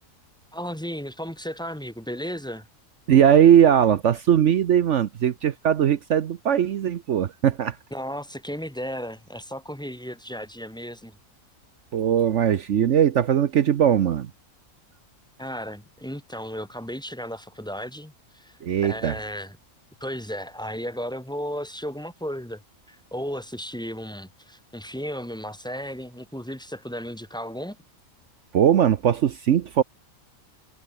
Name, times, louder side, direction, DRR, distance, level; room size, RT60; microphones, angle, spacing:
voice 1, 0.5-2.7 7.9-11.2 15.4-19.6 20.0-22.6 22.9-27.8, equal, 5° left, 1.5 m, -34 dB
voice 2, 3.1-7.8 11.9-14.3 18.6-19.2 28.5-29.8, right 9 dB, 65° right, 1.1 m, -19 dB
omnidirectional pair, 1.4 m